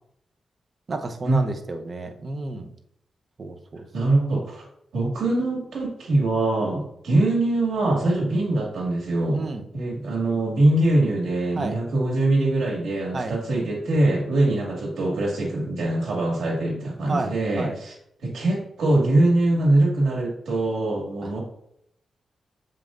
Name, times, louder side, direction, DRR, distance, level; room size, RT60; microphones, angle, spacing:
voice 1, 0.9-2.7 3.4-3.8 9.3-9.6 11.6-11.7 13.1-13.3 14.3-14.5 17.1-17.3 17.6-17.8, right 3 dB, 45° right, 5 dB, 0.9 m, -31 dB
voice 2, 3.9-4.7 4.9-9.4 9.7-17.9 18.2-21.4, right 2 dB, 85° right, -2 dB, 2.2 m, -23 dB
7.0 x 5.4 x 2.6 m, 0.74 s
cardioid pair, 80°, 0 cm